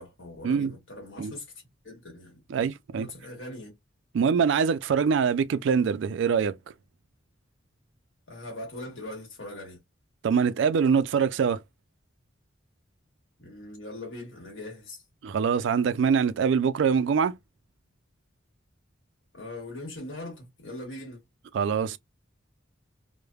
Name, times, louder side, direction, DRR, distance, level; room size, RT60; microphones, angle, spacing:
voice 1, 0.0-1.5 1.8-2.4 2.9-3.7 8.3-9.8 13.4-15.0 19.3-21.2, left 1 dB, 75° left, 1.3 m, -41 dB
voice 2, 2.5-3.1 4.1-6.5 10.2-11.6 15.2-17.3 21.5-22.0, right 6 dB, 70° right, 0.3 m, -24 dB
3.2 x 2.1 x 2.3 m
head